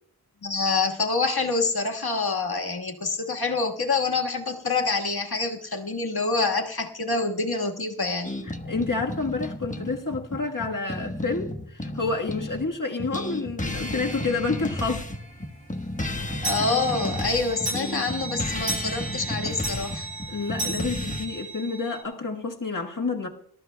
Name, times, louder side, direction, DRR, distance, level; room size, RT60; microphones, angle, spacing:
voice 1, 0.4-8.3 16.4-20.1, left 3 dB, 70° left, 1.7 m, -26 dB
sound 1, 8.2-12.7 13.0-21.3, left 1 dB, 20° left, 1.2 m, -33 dB
voice 2, 8.4-15.0 20.3-23.3, left 3 dB, 55° left, 1.5 m, -29 dB
sound 2, 14.1-14.3 14.7-14.8 15.1-15.2 15.6-22.0, right 2 dB, 90° right, 7.6 m, -35 dB
25.5 x 13.0 x 2.3 m
wide cardioid pair, 65°, 39 cm